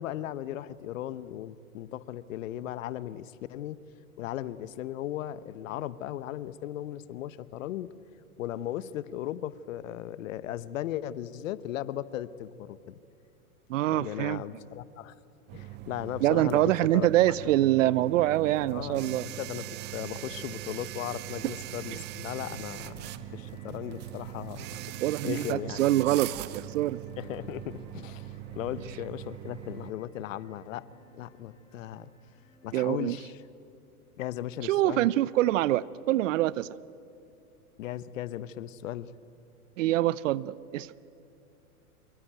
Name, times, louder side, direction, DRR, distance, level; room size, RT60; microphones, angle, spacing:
voice 1, 0.0-3.8 4.2-7.9 8.4-13.0 13.9-15.1 15.5-17.1 17.4-17.5 17.8-17.9 18.7-25.0 25.2-25.8 27.2-30.9 31.1-32.1 32.6-33.4 34.2-35.1 37.8-39.1, left 12 dB, 60° left, 17 dB, 1.0 m, -37 dB
voice 2, 13.7-14.4 16.2-19.3 25.0-27.0 32.7-33.2 34.6-36.7 39.8-40.9, right 15 dB, 55° right, 21 dB, 0.7 m, -25 dB
sound 1, 15.5-29.9, right 14 dB, 25° right, 0.6 m, -41 dB
sound 2, 22.3-32.8, right 3 dB, 10° left, 3.5 m, -55 dB
25.5 x 22.5 x 9.1 m, 2.6 s
hypercardioid pair, 110°, 45 cm